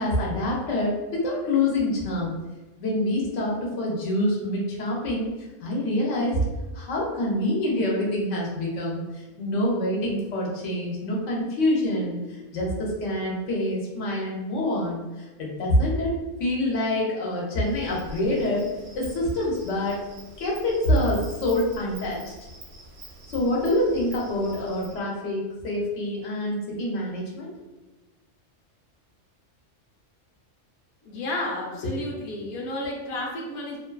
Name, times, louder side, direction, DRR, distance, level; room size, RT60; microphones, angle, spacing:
voice 1, 0.0-2.3 2.8-5.3 5.6-6.4 6.7-12.2 12.5-16.1 16.4-18.7 19.0-20.0 20.4-22.3 23.3-27.5, left 1 dB, 80° left, -3 dB, 1.0 m, -26 dB
Insect, 17.6-25.0, right 2 dB, 85° right, 0.9 m, -45 dB
voice 2, 31.0-33.8, left 1 dB, 65° left, -2 dB, 0.8 m, -31 dB
2.6 x 2.3 x 2.2 m, 1.2 s
omnidirectional pair, 1.3 m